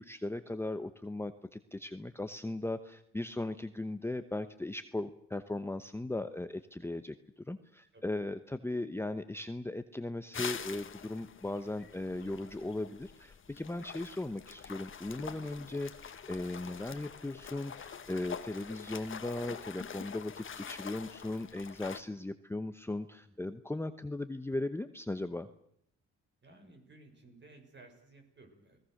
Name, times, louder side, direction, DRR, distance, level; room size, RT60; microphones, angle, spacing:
voice 1, 0.0-7.1 7.5-25.5, left 2 dB, 10° left, 9 dB, 0.9 m, -38 dB
sound 1, 10.3-22.0, left 7 dB, 40° left, 1.7 m, -45 dB
voice 2, 26.4-28.8, right 2 dB, 35° right, 5 dB, 6.5 m, -57 dB
29.5 x 19.5 x 6.5 m, 0.70 s
cardioid pair, 90°, 30 cm